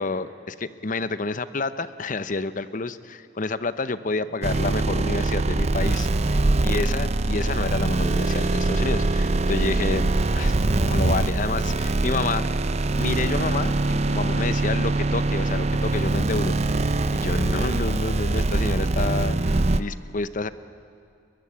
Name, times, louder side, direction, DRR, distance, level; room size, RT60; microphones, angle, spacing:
voice 1, 0.0-10.1 10.3-12.5 13.0-16.8 17.1-20.5, left 3 dB, 45° left, 13 dB, 0.8 m, -29 dB
sound 1, 4.4-19.8, right 2 dB, 40° right, 0.6 m, -23 dB
22.0 x 21.5 x 9.7 m, 2.4 s
head